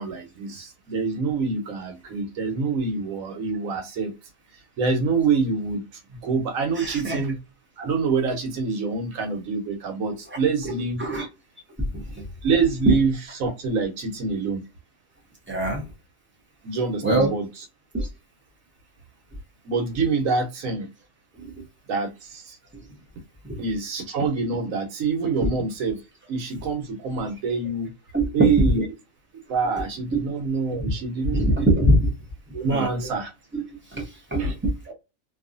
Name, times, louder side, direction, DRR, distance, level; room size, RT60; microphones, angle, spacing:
voice 1, 0.0-4.1 4.8-5.8 6.2-7.4 7.8-11.0 12.4-14.6 15.6-15.8 16.6-17.5 19.6-20.9 21.9-22.6 23.6-26.0 26.3-27.9 28.3-28.8 29.5-31.7 32.5-33.3 34.4-34.5, right 4 dB, 80° right, 1.2 m, -26 dB
voice 2, 6.8-7.2 10.3-10.4 10.6-11.3 11.9-12.2 12.9-13.0 15.5-15.8 17.0-17.3 17.9-18.1 21.4-21.5 22.7-22.8 23.4-23.6 28.1-28.8 30.1-30.2 31.3-32.1 32.7-33.1 33.5-33.6 33.9-34.9, right 1 dB, 10° right, 0.6 m, -23 dB
2.7 x 2.4 x 2.5 m
omnidirectional pair, 1.4 m